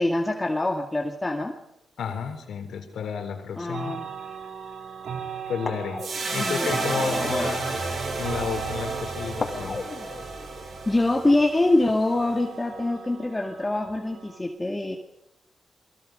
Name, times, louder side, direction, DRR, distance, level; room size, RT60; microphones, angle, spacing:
voice 1, 0.0-1.5 3.6-4.1 6.3-7.5 10.9-15.0, left 2 dB, 20° left, 2 dB, 2.2 m, -25 dB
voice 2, 2.0-4.0 5.5-6.0 6.3-7.8 8.2-9.8, left 6 dB, 85° left, 7 dB, 3.8 m, -32 dB
sound 1, 3.7-14.4, right 7 dB, 80° right, 2.9 m, -39 dB
sound 2, 4.1-4.3 5.1-5.2 5.6-7.3 9.4-11.9 12.2-12.4, left 4 dB, 45° left, 3.5 m, -37 dB
sound 3, 6.0-12.4, right 3 dB, 65° right, 7.4 m, -31 dB
30.0 x 22.5 x 5.3 m, 0.80 s
cardioid pair, 80°, 0 cm